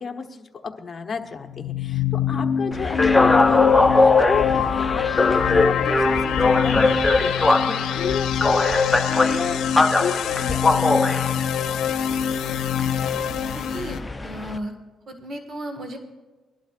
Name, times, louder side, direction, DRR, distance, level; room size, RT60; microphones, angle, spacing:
voice 1, 0.0-11.3, left 5 dB, 40° left, 3 dB, 1.1 m, -32 dB
sound 1, 1.4-14.0, left 8 dB, 85° left, 0.7 m, -24 dB
sound 2, 2.7-14.6, left 2 dB, 15° left, 0.8 m, -22 dB
voice 2, 13.5-14.7 15.1-16.0, right 1 dB, 50° right, 4 dB, 1.9 m, -35 dB
22.5 x 11.5 x 2.6 m, 1.2 s
cardioid pair, 90°, 0 cm